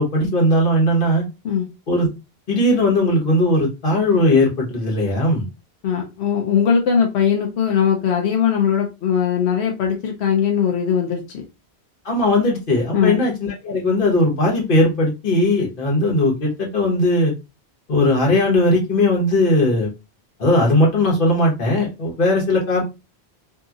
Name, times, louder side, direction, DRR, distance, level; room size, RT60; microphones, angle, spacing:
voice 1, 0.0-1.3 1.9-2.1 2.5-5.5 12.0-17.3 17.9-19.9 20.4-22.8, left 1 dB, 55° left, -2 dB, 1.2 m, -18 dB
voice 2, 5.8-11.4 12.9-13.2, left 7 dB, 90° left, 1 dB, 0.9 m, -20 dB
2.8 x 2.6 x 2.3 m, 0.26 s
omnidirectional pair, 1.1 m